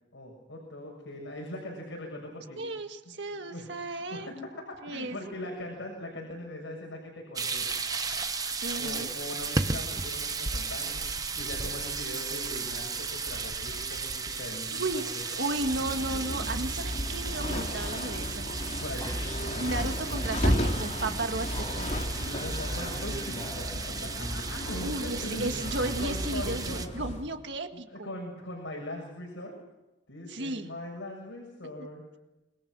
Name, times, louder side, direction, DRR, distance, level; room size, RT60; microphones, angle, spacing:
voice 1, 0.1-2.6 3.0-4.3 4.7-7.7 8.7-14.9 15.1-15.6 18.8-19.1 22.4-27.1 27.7-29.5 30.1-32.0, left 1 dB, 85° left, 0 dB, 6.7 m, -41 dB
voice 2, 2.6-4.3 4.8-5.2 8.6-9.1 14.8-18.5 19.6-22.0 24.8-28.1 30.3-30.7, right 2 dB, 70° right, 6 dB, 1.8 m, -34 dB
sound 1, 7.4-26.9, right 4 dB, 20° right, 1.0 m, -35 dB
sound 2, 15.6-27.3, equal, 40° left, 3.5 m, -33 dB
sound 3, 19.0-27.3, equal, 15° left, 5.4 m, -42 dB
27.5 x 22.0 x 6.3 m, 0.99 s
head